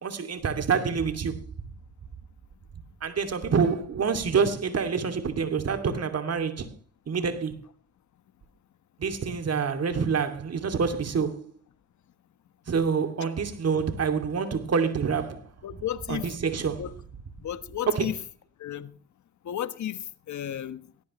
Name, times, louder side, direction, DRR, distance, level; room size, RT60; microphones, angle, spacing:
voice 1, 0.0-1.4 3.0-6.7 7.1-7.6 9.0-11.5 12.7-15.5 16.1-16.9 17.9-18.1, right 6 dB, 55° right, 2.6 m, -27 dB
voice 2, 15.6-16.3 16.8-16.9 17.4-18.1 18.6-18.9 19.4-20.8, left 10 dB, 65° left, 1.3 m, -33 dB
18.0 x 18.0 x 3.1 m
cardioid pair, 65°, 31 cm